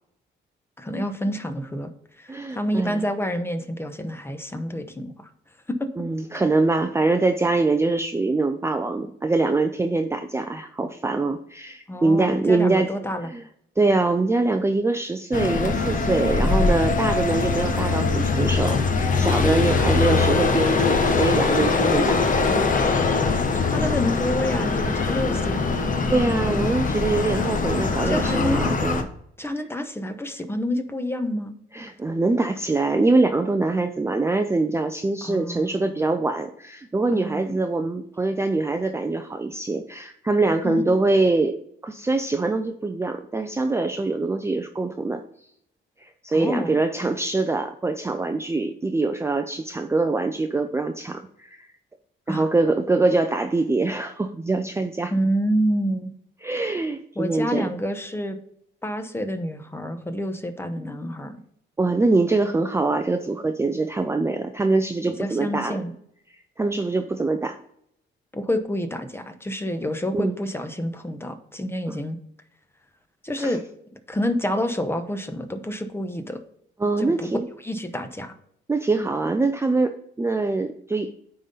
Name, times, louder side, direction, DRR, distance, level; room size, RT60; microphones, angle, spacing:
voice 1, 0.8-1.9 2.2-5.3 5.7-5.9 11.9-13.3 22.5-22.6 23.7-25.7 28.0-28.7 29.4-31.5 35.2-36.2 37.1-37.7 40.6-40.8 46.3-46.8 52.3-52.5 55.1-56.1 57.2-58.4 58.8-61.4 65.1-65.9 68.3-72.2 73.2-73.6 74.1-76.4 77.0-77.3 77.6-78.3, equal, 10° left, 8 dB, 0.9 m, -28 dB
voice 2, 2.3-3.0 6.0-12.9 13.3-13.4 13.8-22.2 24.9-25.0 26.1-29.1 31.7-41.6 41.8-45.2 46.0-51.7 52.3-55.1 56.4-57.7 61.8-65.8 66.6-67.6 70.1-70.3 71.9-72.0 73.4-73.6 76.8-77.5 78.7-81.1, right 3 dB, 15° right, 6 dB, 0.5 m, -24 dB
sound 1, 15.3-29.0, left 4 dB, 40° left, 1.0 m, -22 dB
9.0 x 3.9 x 3.9 m, 0.72 s
cardioid pair, 90°, 20 cm